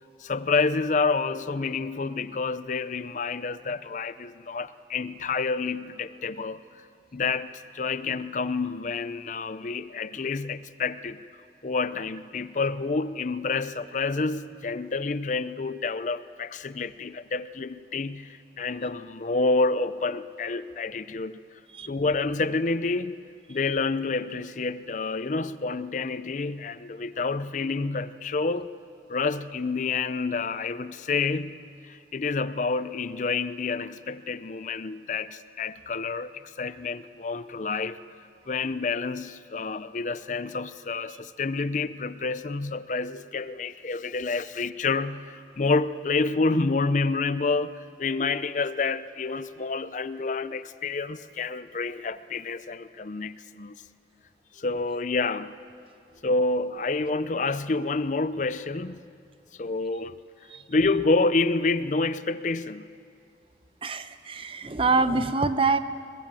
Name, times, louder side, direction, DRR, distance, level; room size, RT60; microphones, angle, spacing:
voice 1, 0.2-6.8 7.1-11.2 11.6-21.4 21.9-23.2 23.5-28.7 29.1-31.6 31.8-38.0 38.5-53.8 54.5-55.6 56.2-59.0 59.5-60.2 60.7-62.9, left 3 dB, 45° left, 14 dB, 0.5 m, -28 dB
voice 2, 63.8-65.8, right 3 dB, 30° right, 11 dB, 0.8 m, -25 dB
22.0 x 21.5 x 7.5 m, 2.3 s
head